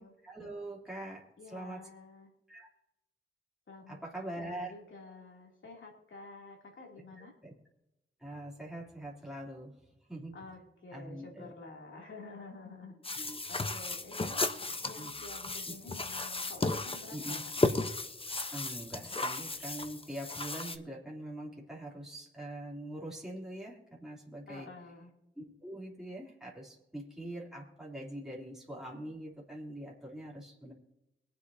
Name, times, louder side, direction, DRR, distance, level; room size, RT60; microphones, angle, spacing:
voice 1, 0.2-1.9 2.5-2.7 3.9-4.7 7.2-7.5 8.2-10.4 10.9-11.5 13.2-13.4 15.0-15.1 15.7-15.8 17.1-17.4 18.5-24.7 25.4-30.7, right 1 dB, ahead, -5 dB, 3.1 m, -43 dB
voice 2, 1.4-2.3 3.7-7.3 10.3-17.5 24.5-25.1, left 3 dB, 75° left, 0 dB, 2.8 m, -50 dB
Kneading dough in metal pot, 13.0-20.8, left 3 dB, 25° left, 0.8 m, -35 dB
23.5 x 8.3 x 2.8 m, 0.92 s
cardioid pair, 75°, 20 cm